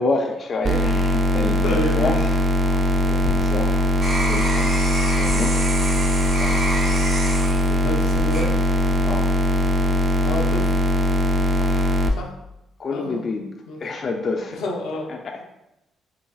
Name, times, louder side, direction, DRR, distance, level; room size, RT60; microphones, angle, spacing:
voice 1, 0.0-4.7 5.1-5.7 6.2-6.6 9.0-9.3 11.6-12.0 12.8-13.5 13.8-14.6 15.1-15.4, left 3 dB, 45° left, 2 dB, 0.3 m, -29 dB
sound 1, 0.6-12.1, equal, 35° right, 0.4 m, -20 dB
voice 2, 1.6-2.2 7.7-8.5 10.2-10.7 12.2-12.3 12.9-13.2 13.7-13.8 14.5-15.1, left 1 dB, 90° left, -1 dB, 0.6 m, -29 dB
sound 2, 3.2-9.1 9.6-10.1, right 1 dB, 65° right, 1.2 m, -29 dB
3.8 x 3.1 x 2.3 m, 0.89 s
cardioid pair, 90°, 0 cm